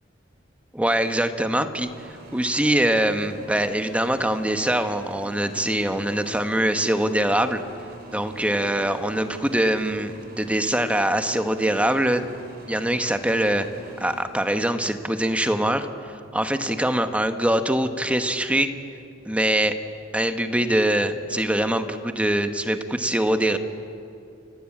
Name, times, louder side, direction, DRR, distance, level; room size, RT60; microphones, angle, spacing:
voice 1, 0.7-1.9 2.3-7.6 8.1-12.2 12.7-13.7 14.0-15.9 16.3-18.7 19.2-19.7 20.1-23.6, right 1 dB, 5° right, 8 dB, 1.1 m, -23 dB
sound 1, 1.8-14.8, right 3 dB, 55° right, 4.6 m, -45 dB
29.5 x 14.5 x 8.7 m, 2.6 s
head